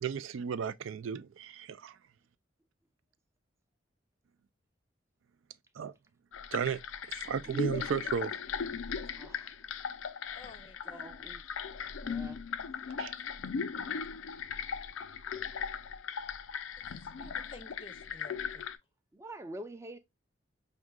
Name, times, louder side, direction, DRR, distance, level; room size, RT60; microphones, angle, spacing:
voice 1, 0.0-2.0 5.8-5.9 6.5-6.8 7.1-8.4 13.0-13.1, right 7 dB, 80° right, 0.4 m, -34 dB
sound 1, 6.3-18.8, left 6 dB, 80° left, 0.4 m, -38 dB
voice 2, 7.2-7.8 9.2-9.5 10.8-11.4 12.0-12.4 19.1-20.0, right 1 dB, 15° right, 0.5 m, -46 dB
voice 3, 10.4-11.1 16.9-18.7, left 2 dB, 25° left, 0.6 m, -53 dB
6.0 x 2.7 x 2.2 m
head